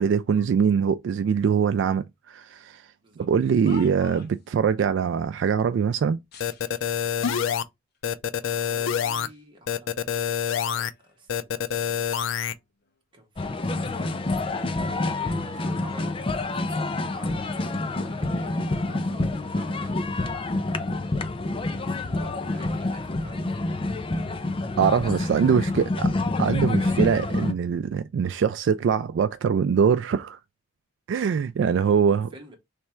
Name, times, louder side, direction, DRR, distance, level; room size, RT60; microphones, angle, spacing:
voice 1, 0.0-2.8 3.2-6.2 24.8-26.1 26.4-30.4 31.1-32.3, right 6 dB, 65° right, 0.3 m, -23 dB
sound 1, 3.2-4.5 6.3-7.2 7.9-8.0 8.8-9.5 9.9-11.4 11.7-13.4 13.7-15.8 16.5-16.8, left 3 dB, 55° left, 0.9 m, -50 dB
sound 2, 6.4-7.6 8.0-9.3 9.7-10.9 11.3-12.5, left 8 dB, 85° left, 0.4 m, -26 dB
voice 2, 8.4-10.2 10.5-12.2 13.1-20.3 21.7-23.9 25.3-26.2 26.9-27.1 32.1-32.6, right 1 dB, 25° right, 1.3 m, -49 dB
sound 3, 13.4-27.5, left 2 dB, 30° left, 0.5 m, -27 dB
3.4 x 3.2 x 4.3 m
head